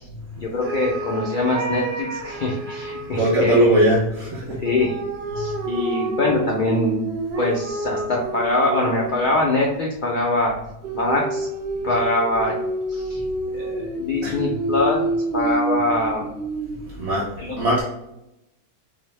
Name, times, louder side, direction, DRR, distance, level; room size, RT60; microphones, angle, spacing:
voice 1, 0.4-3.7 4.6-5.0 5.3-7.0 7.4-10.5 10.9-11.5 11.8-12.5 12.9-13.2 13.5-15.0 15.3-16.2 17.4-17.6, left 2 dB, 85° left, -2 dB, 0.4 m, -23 dB
sound 1, 0.6-3.6 4.6-9.4 10.8-16.9, right 2 dB, 70° right, 0.6 m, -28 dB
voice 2, 3.2-4.6 14.2-14.4 17.0-17.3 17.6-17.8, right 1 dB, 55° right, -6 dB, 0.9 m, -19 dB
4.9 x 2.0 x 3.2 m, 0.88 s
omnidirectional pair, 1.6 m